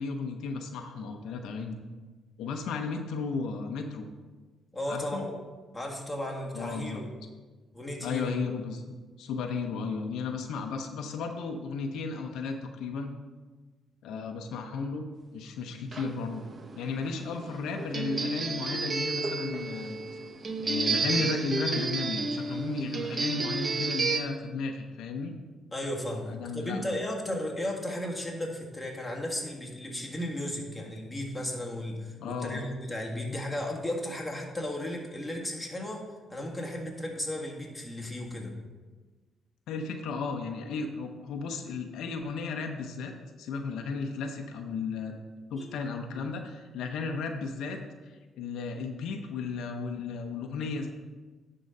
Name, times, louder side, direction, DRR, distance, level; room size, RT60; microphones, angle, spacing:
voice 1, 0.0-1.8 2.4-4.1 4.9-5.2 6.5-7.0 8.0-13.1 14.0-15.1 15.3-16.5 16.8-20.0 20.6-25.3 26.3-26.8 32.2-32.6 39.7-43.1 43.4-45.1 45.5-50.9, left 4 dB, 85° left, 4 dB, 0.7 m, -34 dB
voice 2, 4.7-5.4 5.7-7.1 7.7-8.3 15.5-15.6 25.7-36.0 36.3-38.5 45.6-45.8, left 1 dB, 10° left, -1 dB, 1.7 m, -35 dB
sound 1, 15.9-24.2, right 4 dB, 35° right, 0.7 m, -31 dB
10.5 x 3.8 x 5.4 m, 1.3 s
cardioid pair, 90°, 0 cm